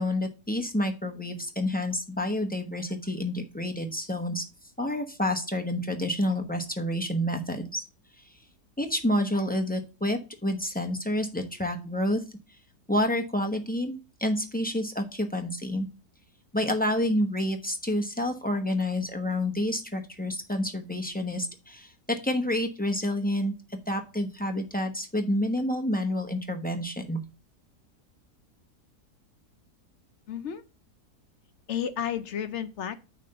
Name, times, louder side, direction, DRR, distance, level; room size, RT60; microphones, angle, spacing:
voice 1, 0.0-4.4 4.8-7.8 8.8-12.2 12.9-15.9 16.5-21.9 22.2-23.5 23.9-27.2, left 1 dB, 10° left, 3 dB, 0.7 m, -29 dB
voice 2, 30.3-30.6 31.7-32.9, left 9 dB, 60° left, 11 dB, 0.8 m, -32 dB
9.1 x 3.4 x 6.6 m, 0.31 s
omnidirectional pair, 1.7 m